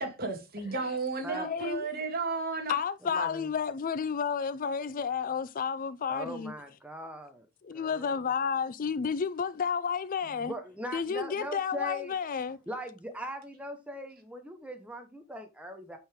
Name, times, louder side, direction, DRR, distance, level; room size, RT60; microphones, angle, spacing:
voice 1, 0.0-2.8, right 3 dB, 45° right, 2.2 m, -33 dB
voice 2, 1.3-1.9 2.7-6.5 7.6-10.5 10.9-12.6, left 6 dB, 40° left, 0.4 m, -31 dB
voice 3, 3.0-3.5 6.1-7.5 7.7-8.2 10.4-12.2 12.7-16.0, equal, 5° right, 1.1 m, -40 dB
8.6 x 5.4 x 3.6 m
head